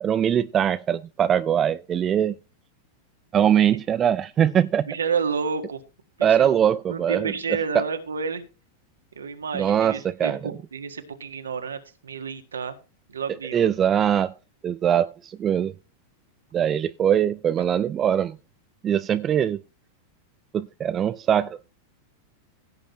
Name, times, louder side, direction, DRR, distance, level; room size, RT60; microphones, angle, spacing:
voice 1, 0.0-2.3 3.3-4.9 6.2-7.3 7.7-7.8 9.5-10.4 13.5-14.3 14.6-15.7 16.5-18.4 18.8-19.6 20.5-21.6, right 9 dB, 25° right, 0.4 m, -22 dB
voice 2, 4.9-5.8 6.2-6.6 6.9-8.4 9.2-12.8 13.1-13.7, right 5 dB, 70° right, 1.7 m, -30 dB
16.5 x 7.9 x 3.1 m
figure-of-eight pair, 90°, 0 cm